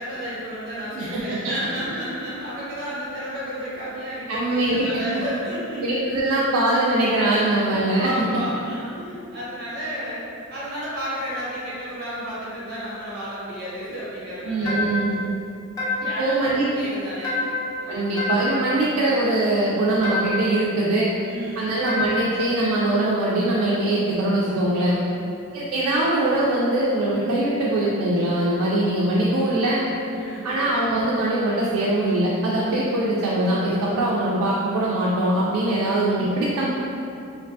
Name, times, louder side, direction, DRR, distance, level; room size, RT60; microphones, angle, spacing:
voice 1, 0.0-5.8 7.9-10.2 10.5-14.8 16.0-17.4 17.8-18.1 21.2-21.7 30.1-30.5, equal, 45° right, -9 dB, 0.9 m, -32 dB
voice 2, 1.0-1.4 4.3-5.0 5.8-8.1 14.5-15.2 16.2-16.7 17.9-21.1 21.6-25.0 25.5-29.8 30.4-36.7, right 1 dB, 80° right, -6 dB, 0.3 m, -22 dB
sound 1, 14.7-15.2 15.8-16.3 17.2-17.8 18.2-18.7 20.0-20.6 21.9-22.4, left 3 dB, 15° left, 0.4 m, -27 dB
2.4 x 2.2 x 2.6 m, 2.6 s
head